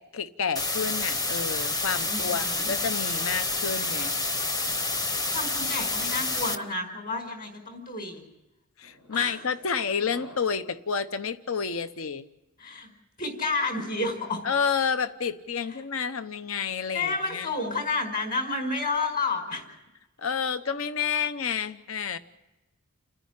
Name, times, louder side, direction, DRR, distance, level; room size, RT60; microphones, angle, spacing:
voice 1, 0.0-4.1 8.8-12.3 14.4-17.5 20.2-22.2, left 6 dB, 65° left, 12 dB, 0.9 m, -30 dB
sound 1, 0.6-6.6, left 2 dB, 20° left, 1.0 m, -28 dB
voice 2, 2.0-2.7 5.3-8.2 9.1-9.4 12.6-12.9 13.2-14.4 16.9-19.6, left 3 dB, 40° left, 4 dB, 5.2 m, -30 dB
sound 2, 6.3-6.9 7.6-7.9 8.8-10.7, left 1 dB, 80° left, 6.4 m, -52 dB
30.0 x 10.0 x 10.0 m, 0.99 s
head